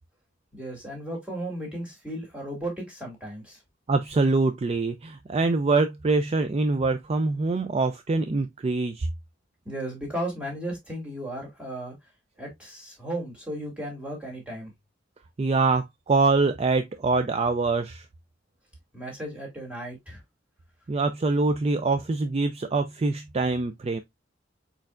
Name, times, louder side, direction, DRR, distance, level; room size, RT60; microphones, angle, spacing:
voice 1, 0.5-3.6 9.7-11.9 12.4-14.7 18.9-20.2, right 1 dB, 5° right, 2.2 m, -35 dB
voice 2, 3.9-9.1 15.4-18.1 20.9-24.0, right 3 dB, 30° right, 0.4 m, -24 dB
4.5 x 4.5 x 2.4 m
head